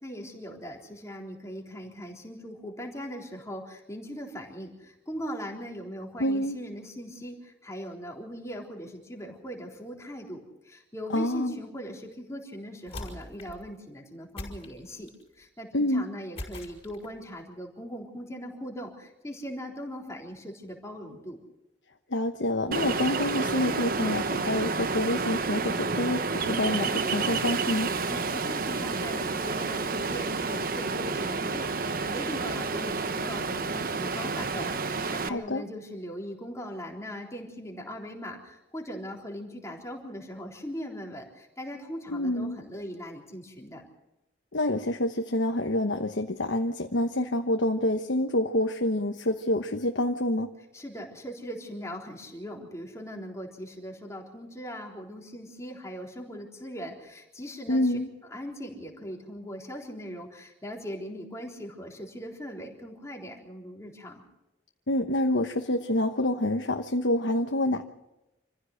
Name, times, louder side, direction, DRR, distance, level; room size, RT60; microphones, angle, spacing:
voice 1, 0.0-21.4 28.1-43.8 50.7-58.0 58.3-64.2, equal, 15° left, 0 dB, 3.8 m, -40 dB
voice 2, 6.2-6.6 11.1-11.5 15.7-16.1 22.1-28.0 35.2-35.7 42.1-42.6 44.5-50.5 57.7-58.1 64.9-67.8, left 1 dB, 75° left, 5 dB, 1.1 m, -27 dB
sound 1, 12.9-13.7 14.4-15.3 16.4-17.2, left 1 dB, 30° left, 5.3 m, -41 dB
Ocean, 22.7-35.3, right 4 dB, 50° right, 0.9 m, -30 dB
27.0 x 15.0 x 6.6 m, 0.94 s
head